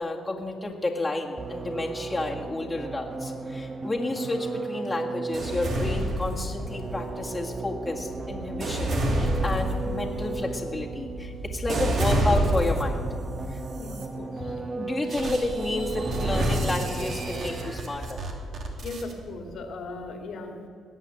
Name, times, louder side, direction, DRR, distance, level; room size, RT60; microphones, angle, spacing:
voice 1, 0.0-13.1 13.5-13.6 14.8-18.2, left 2 dB, 20° left, -2 dB, 2.0 m, -31 dB
sound 1, 1.4-18.0, right 3 dB, 30° right, 0.9 m, -36 dB
sound 2, 5.3-6.9 7.6-13.1 13.7-14.1 15.1-19.1, right 1 dB, 55° right, 2.5 m, -29 dB
voice 2, 13.7-14.6 18.8-20.7, left 3 dB, 65° left, 4 dB, 2.2 m, -38 dB
20.0 x 8.3 x 7.8 m, 2.4 s
cardioid pair, 90°, 0 cm